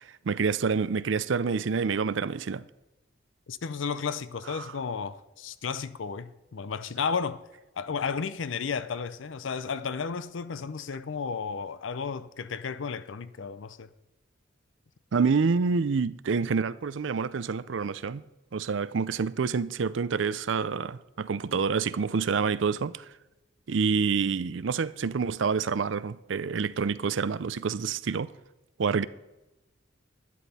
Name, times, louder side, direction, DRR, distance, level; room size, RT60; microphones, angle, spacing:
voice 1, 0.0-2.6 4.5-4.7 15.1-18.2 18.5-23.0 23.7-28.3 28.8-29.1, right 5 dB, 75° right, 0.5 m, -27 dB
voice 2, 3.5-7.4 7.8-13.9, left 5 dB, 85° left, 0.5 m, -33 dB
11.5 x 11.0 x 4.2 m
head